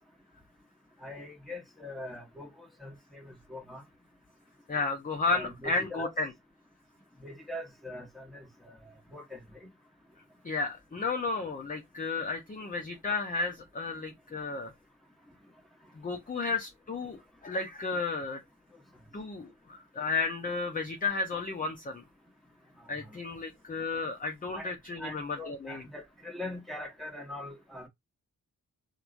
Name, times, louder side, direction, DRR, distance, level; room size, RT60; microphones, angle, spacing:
voice 1, 1.0-3.8 5.3-6.1 7.2-8.8 9.1-9.7 23.1-23.2 24.5-24.7 25.0-27.9, left 1 dB, ahead, 1.1 m, -42 dB
voice 2, 4.7-6.3 10.4-14.7 15.9-18.4 19.1-22.0 22.9-25.8, left 4 dB, 20° left, 0.6 m, -33 dB
2.9 x 2.2 x 2.5 m
supercardioid pair, 45°, 39 cm